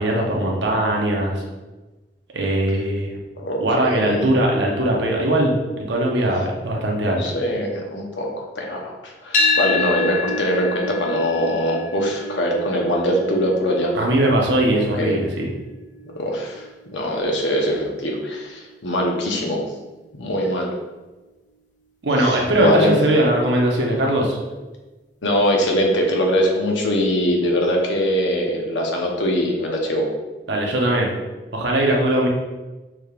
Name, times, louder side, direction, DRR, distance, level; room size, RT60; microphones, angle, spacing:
voice 1, 0.0-1.4 2.3-3.1 3.6-7.3 13.9-15.5 22.0-24.4 30.5-31.1 31.5-32.3, right 1 dB, 75° right, 0 dB, 0.9 m, -20 dB
voice 2, 3.4-4.3 7.2-13.9 15.0-15.1 16.1-16.6 16.9-19.6 20.2-20.7 22.2-22.9 25.2-30.1, equal, 85° left, 0 dB, 0.9 m, -22 dB
sound 1, 9.3-17.5, left 3 dB, 45° left, 0.6 m, -28 dB
6.2 x 3.4 x 2.4 m, 1.2 s
head